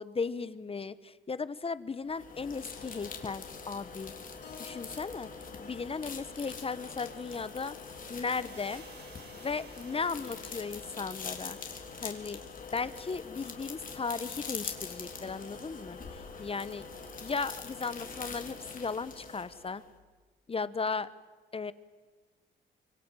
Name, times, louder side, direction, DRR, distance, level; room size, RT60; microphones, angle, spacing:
voice 1, 0.0-4.1 4.6-5.3 5.6-7.8 8.1-8.8 9.3-11.6 12.0-12.4 12.7-16.9 17.2-19.8 20.5-21.1 21.5-21.7, left 4 dB, 30° left, 15 dB, 1.1 m, -36 dB
sound 1, 2.1-19.9, left 5 dB, 45° left, 3.8 m, -43 dB
Keyboard (musical), 4.4-8.6, left 6 dB, 65° left, 4.0 m, -56 dB
sound 2, 7.9-12.9, right 5 dB, 55° right, 4.4 m, -57 dB
25.0 x 23.5 x 9.2 m, 1.4 s
cardioid pair, 90°, 20 cm